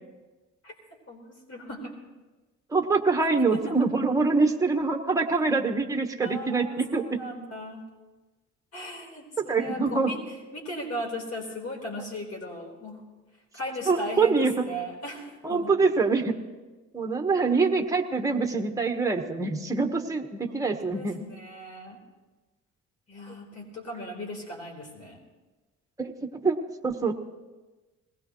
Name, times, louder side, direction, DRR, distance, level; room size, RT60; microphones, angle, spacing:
voice 1, 1.1-1.9 3.2-3.7 6.2-7.8 8.7-10.2 10.5-13.0 13.5-15.7 20.5-20.6 20.9-22.0 23.1-25.2, left 1 dB, 55° left, 0 dB, 4.3 m, -37 dB
voice 2, 2.7-7.2 9.4-10.2 13.9-14.7 15.4-16.3 16.9-21.2 26.0-26.6 26.8-27.1, right 4 dB, 10° right, 3 dB, 1.3 m, -25 dB
21.0 x 17.0 x 3.1 m, 1.2 s
cardioid pair, 90°, 30 cm